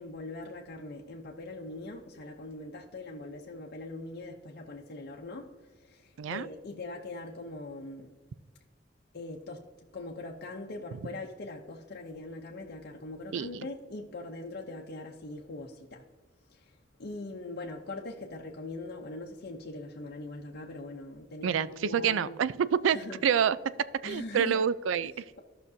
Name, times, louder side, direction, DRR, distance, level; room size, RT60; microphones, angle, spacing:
voice 1, 0.0-8.1 9.1-9.7 9.9-16.1 16.5-16.7 17.0-22.4 22.9-23.2 24.0-24.6, left 2 dB, 55° left, 0.7 m, -41 dB
voice 2, 13.3-13.7 21.4-23.0 23.2-23.6 24.0-25.2, right 8 dB, 85° right, 0.4 m, -27 dB
14.0 x 5.9 x 2.7 m
head